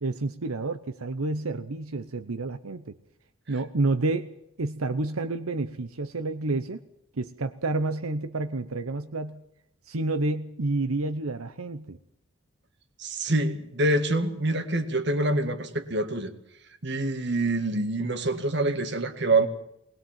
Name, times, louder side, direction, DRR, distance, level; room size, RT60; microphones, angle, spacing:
voice 1, 0.0-3.0 3.5-4.3 4.6-6.8 7.1-9.4 9.8-12.0, right 2 dB, 85° right, 10 dB, 0.9 m, -29 dB
voice 2, 13.0-16.3 16.8-19.5, right 2 dB, 55° right, 9 dB, 1.9 m, -26 dB
20.5 x 20.0 x 7.4 m, 0.79 s
head